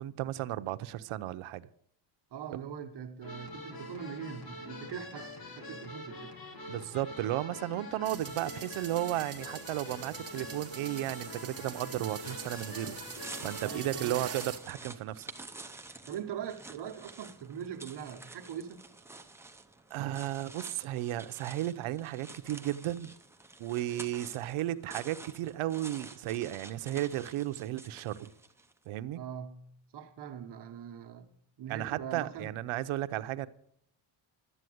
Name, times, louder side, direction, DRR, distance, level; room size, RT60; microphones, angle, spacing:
voice 1, 0.0-1.7 6.7-12.9 13.4-15.3 19.9-23.1 23.6-28.3 28.9-29.2 31.7-33.5, right 14 dB, 80° right, 0.8 m, -34 dB
voice 2, 2.3-5.3 5.6-6.3 13.6-14.3 16.1-18.9 29.1-29.6 29.9-31.3 31.6-32.5, right 8 dB, 55° right, 1.3 m, -42 dB
sound 1, 3.2-14.1, left 2 dB, 45° left, 2.3 m, -45 dB
sound 2, 8.0-14.6, right 7 dB, 30° right, 1.4 m, -44 dB
sound 3, 11.7-28.8, right 3 dB, 5° right, 0.6 m, -50 dB
12.5 x 8.5 x 7.8 m
cardioid pair, 155°, 49 cm